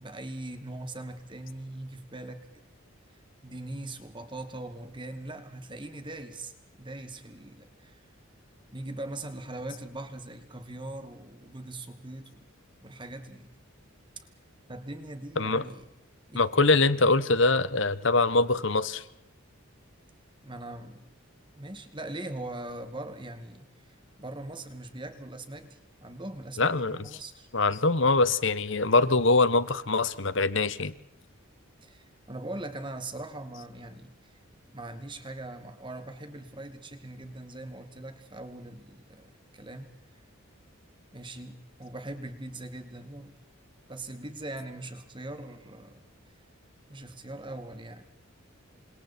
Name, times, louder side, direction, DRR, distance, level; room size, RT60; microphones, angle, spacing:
voice 1, 0.0-2.6 3.4-6.5 6.8-8.0 8.7-12.5 12.8-13.5 14.2-14.3 14.7-15.8 16.3-16.5 20.4-21.1 21.5-27.5 31.8-34.4 34.7-39.9 41.1-43.4 43.9-46.0 46.9-48.1, right 2 dB, 20° right, 8 dB, 2.2 m, -41 dB
voice 2, 16.3-19.0 26.6-27.1 27.5-30.9, left 3 dB, 60° left, 15 dB, 1.2 m, -23 dB
29.0 x 26.0 x 4.5 m, 0.82 s
head